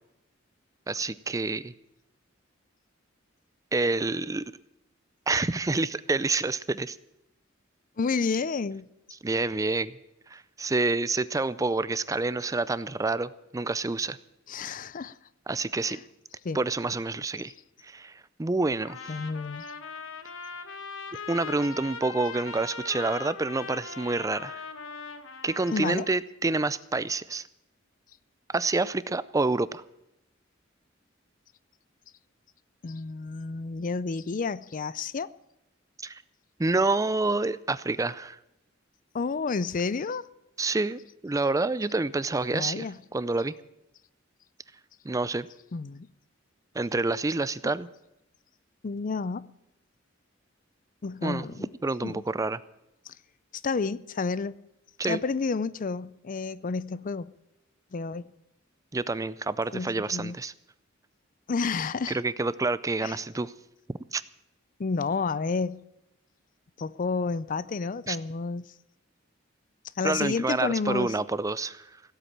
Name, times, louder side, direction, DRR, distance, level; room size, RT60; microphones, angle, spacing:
voice 1, 0.9-1.7 3.7-4.4 5.3-7.0 9.2-9.9 10.3-14.2 15.5-16.0 16.5-17.5 17.8-19.1 21.3-24.6 25.4-27.4 28.5-29.8 36.0-36.2 36.6-38.4 40.6-42.9 43.1-43.5 45.0-45.5 46.7-47.9 51.2-52.6 55.0-55.2 58.9-60.5 62.1-63.5 64.1-64.2 68.1-68.2 70.0-71.9, right 3 dB, 15° right, 0.4 m, -28 dB
voice 2, 8.0-8.9 14.5-15.2 15.8-16.0 16.4-16.6 19.1-19.7 25.7-26.1 32.8-35.3 39.1-40.3 42.5-43.0 45.7-46.1 48.8-49.5 51.0-51.7 52.0-52.2 53.1-53.2 53.6-54.6 55.1-57.3 57.9-58.2 59.7-60.4 61.5-62.2 63.0-63.2 64.8-65.8 66.8-68.6 70.0-71.2, left 4 dB, 45° left, 0.5 m, -30 dB
Trumpet, 18.8-26.2, left 5 dB, 90° left, 1.4 m, -40 dB
17.0 x 8.2 x 8.7 m
head